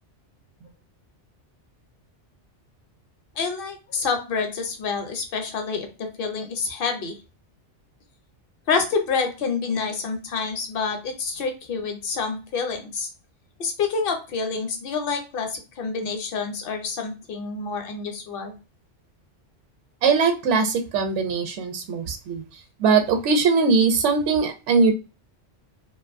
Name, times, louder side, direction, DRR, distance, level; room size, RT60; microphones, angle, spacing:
voice 1, 3.4-5.9 6.2-7.2 8.7-13.1 13.6-18.6, left 5 dB, 60° left, 5 dB, 0.7 m, -27 dB
voice 2, 20.0-22.4 22.8-24.9, right 4 dB, 80° right, 6 dB, 0.9 m, -21 dB
2.5 x 2.3 x 2.5 m, 0.31 s
omnidirectional pair, 1.2 m